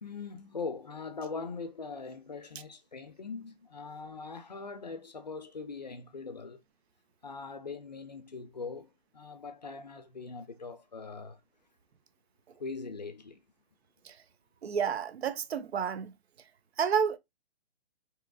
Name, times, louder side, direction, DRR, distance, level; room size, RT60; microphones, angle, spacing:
voice 1, 0.0-6.6 7.2-8.9 9.1-11.4 12.6-13.4, left 4 dB, 45° left, 0.4 m, -41 dB
voice 2, 14.6-16.1 16.8-17.2, right 7 dB, 75° right, 0.6 m, -30 dB
3.5 x 2.9 x 2.3 m
hypercardioid pair, 180°, 32 cm